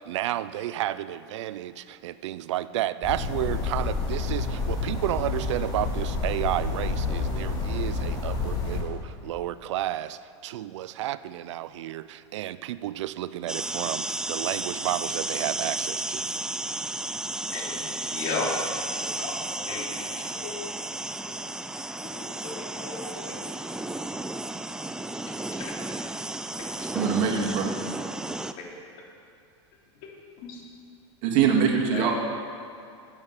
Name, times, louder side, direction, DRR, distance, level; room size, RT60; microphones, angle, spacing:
voice 1, 0.0-16.3, right 13 dB, 75° right, 16 dB, 0.5 m, -31 dB
sound 1, 3.0-8.8, left 3 dB, 25° left, 3.7 m, -29 dB
sound 2, 13.5-28.5, right 2 dB, 5° right, 0.4 m, -33 dB
voice 2, 17.5-17.8 18.1-18.5 19.2-19.3 19.7-20.6 22.0-23.5 25.1-25.3 25.6-25.8 26.6-26.9 28.6-28.8 30.4-30.6 31.9-32.1, left 3 dB, 55° left, -2 dB, 3.1 m, -36 dB
voice 3, 26.9-27.7 31.2-32.1, right 7 dB, 55° right, 0 dB, 2.2 m, -23 dB
13.5 x 8.4 x 5.7 m, 2.5 s
hypercardioid pair, 115°, 15 cm